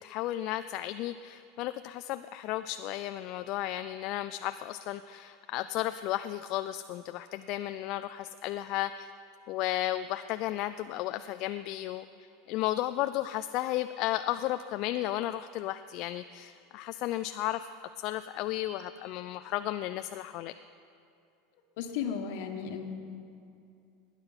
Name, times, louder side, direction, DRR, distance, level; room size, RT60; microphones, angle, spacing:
voice 1, 0.0-9.1 9.5-12.1 12.5-17.7 18.0-20.5, left 14 dB, 50° left, 11 dB, 0.3 m, -34 dB
voice 2, 21.8-22.9, left 7 dB, 65° left, 5 dB, 1.5 m, -34 dB
18.0 x 9.7 x 5.8 m, 2.5 s
supercardioid pair, 145°, 0 cm